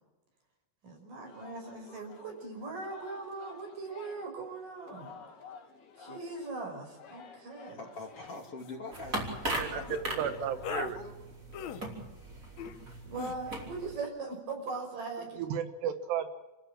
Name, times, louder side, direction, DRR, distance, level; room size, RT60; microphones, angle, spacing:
voice 1, 0.8-5.2 6.0-7.8 13.0-15.4, right 3 dB, 55° right, 2 dB, 7.0 m, -40 dB
Singing, 1.2-10.9, left 6 dB, 65° left, 4.4 m, -53 dB
voice 2, 7.8-9.2 9.7-10.5 10.9-11.1, left 2 dB, 40° left, 2 dB, 3.1 m, -44 dB
sound 1, 7.9-8.1 8.4-8.7 9.9-10.0 10.6-10.9 11.5-11.8 12.6-12.8 13.1-13.3, left 9 dB, 90° left, 1.5 m, -39 dB
sound 2, 8.9-14.0, right 1 dB, 20° right, 4.9 m, -39 dB
voice 3, 9.6-11.0 15.4-16.3, right 8 dB, 85° right, 10 dB, 3.5 m, -33 dB
29.5 x 14.5 x 7.5 m, 1.1 s
omnidirectional pair, 4.7 m